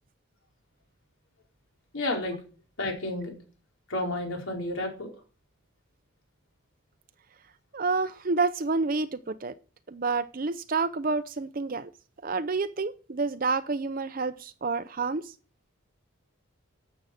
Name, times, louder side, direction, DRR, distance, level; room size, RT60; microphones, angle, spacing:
voice 1, 1.9-2.4 2.8-3.3 3.9-5.1, left 1 dB, 75° left, 4.6 m, -31 dB
voice 2, 7.7-9.5 9.9-11.9 12.2-15.3, right 4 dB, 40° right, 0.5 m, -29 dB
12.0 x 7.8 x 6.3 m
head